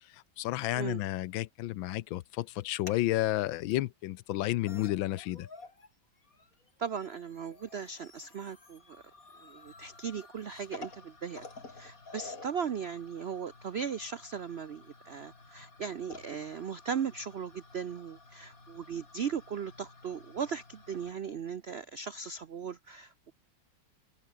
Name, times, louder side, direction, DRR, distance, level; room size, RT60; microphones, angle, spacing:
voice 1, 0.1-5.5, left 16 dB, 85° left, 1.4 m, -31 dB
sound 1, 2.8-3.0 3.7-3.8 4.4-4.5 4.7-5.9 6.2-21.1, left 3 dB, 45° left, 4.1 m, -52 dB
voice 2, 6.8-9.0 9.4-11.5 11.7-23.3, right 7 dB, 85° right, 0.5 m, -38 dB
open air
omnidirectional pair, 2.1 m